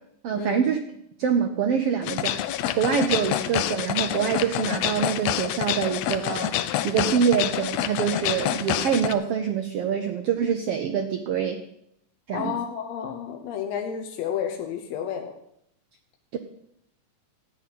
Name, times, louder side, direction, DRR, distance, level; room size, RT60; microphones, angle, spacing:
voice 1, 0.2-0.8 1.2-6.5 6.8-11.6 12.3-12.5 16.3-16.4, right 7 dB, 80° right, 6 dB, 1.3 m, -25 dB
sound 1, 2.0-9.1, left 12 dB, 85° left, 1.4 m, -27 dB
voice 2, 12.3-15.3, left 8 dB, 70° left, 3 dB, 1.9 m, -31 dB
14.0 x 9.5 x 4.2 m, 0.74 s
omnidirectional pair, 3.6 m